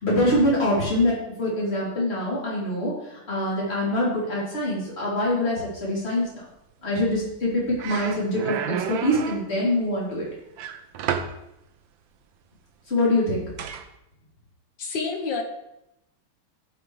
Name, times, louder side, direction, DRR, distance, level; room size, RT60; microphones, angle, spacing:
voice 1, 0.0-6.3 6.8-10.3 12.9-13.4, left 1 dB, 30° left, -6 dB, 3.5 m, -24 dB
sound 1, 7.3-7.5 7.8-9.5 10.6-11.4 13.6-13.9, right 8 dB, 70° right, 1.3 m, -30 dB
voice 2, 14.8-15.4, left 4 dB, 60° left, 3 dB, 1.8 m, -28 dB
14.5 x 6.1 x 3.3 m, 0.85 s
omnidirectional pair, 2.4 m